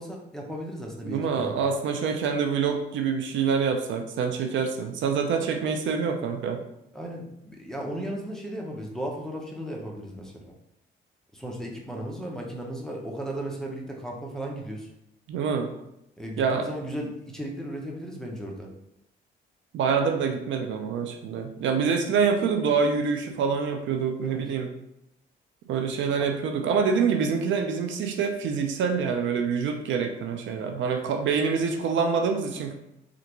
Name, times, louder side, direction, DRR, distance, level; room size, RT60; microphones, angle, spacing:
voice 1, 0.0-1.6 6.9-10.5 11.3-14.9 16.2-18.7 24.2-24.4 26.2-26.3, right 1 dB, 5° left, -2 dB, 0.7 m, -35 dB
voice 2, 1.0-6.6 15.3-15.7 16.4-16.7 19.7-24.7 25.7-32.7, right 5 dB, 70° right, 4 dB, 0.5 m, -26 dB
3.3 x 2.5 x 3.0 m, 0.83 s
cardioid pair, 90°, 20 cm